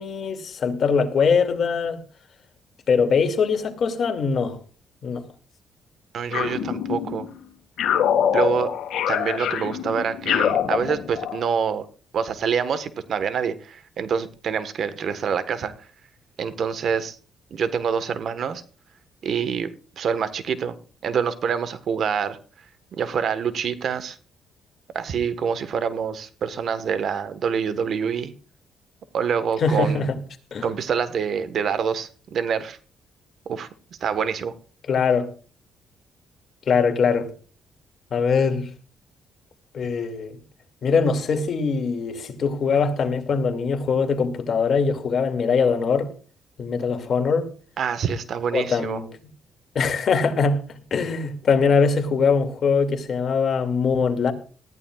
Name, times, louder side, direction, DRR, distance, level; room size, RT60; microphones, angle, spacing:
voice 1, 0.0-2.0 2.9-4.6 5.0-5.2 29.6-30.2 30.5-30.7 34.9-35.3 36.7-37.3 38.1-38.7 39.7-40.3 40.8-46.1 46.6-47.5 48.5-49.1 49.7-50.6 50.9-54.3, left 5 dB, 55° left, 2.4 m, -22 dB
voice 2, 6.1-7.3 8.3-8.7 9.1-11.9 12.1-15.7 16.4-17.2 17.5-18.6 19.2-19.7 20.0-20.7 21.0-22.4 22.9-24.2 24.9-28.3 29.1-30.1 30.6-32.8 33.5-33.7 34.0-34.5 47.8-49.0, right 7 dB, 60° right, 1.4 m, -26 dB
sound 1, 6.3-7.3 7.8-11.4, left 9 dB, 80° left, 1.9 m, -24 dB
19.5 x 14.0 x 2.4 m
cardioid pair, 90°, 0 cm